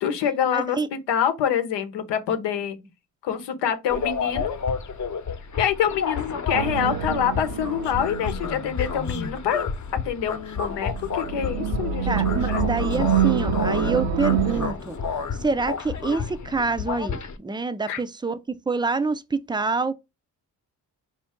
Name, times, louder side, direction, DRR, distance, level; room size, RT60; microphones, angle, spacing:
voice 1, 0.0-2.8 3.2-4.5 5.6-9.7 10.0-12.6 17.9-18.0, left 9 dB, 80° left, 0.9 m, -26 dB
voice 2, 0.5-0.9 12.1-15.0 15.4-19.9, right 4 dB, 10° right, 0.5 m, -26 dB
sound 1, 3.9-17.4, left 5 dB, 45° left, 1.0 m, -30 dB
sound 2, 6.5-9.3 10.9-14.7, right 8 dB, 75° right, 0.7 m, -26 dB
4.4 x 2.7 x 3.5 m
supercardioid pair, 55°, 41 cm